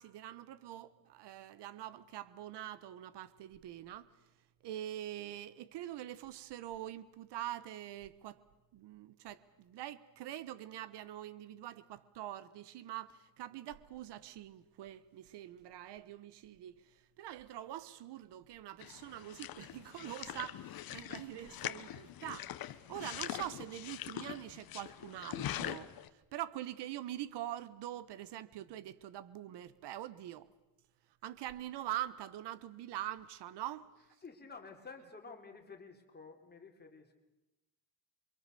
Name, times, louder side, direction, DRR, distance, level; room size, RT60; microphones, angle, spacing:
voice 1, 0.0-4.1 4.6-8.4 8.7-30.5 31.2-33.9, right 13 dB, 70° right, 1.2 m, -44 dB
sound 1, 18.8-26.1, left 12 dB, 55° left, 1.1 m, -43 dB
voice 2, 34.2-37.1, left 4 dB, 25° left, 3.8 m, -51 dB
28.5 x 25.0 x 6.8 m
cardioid pair, 135°, 42 cm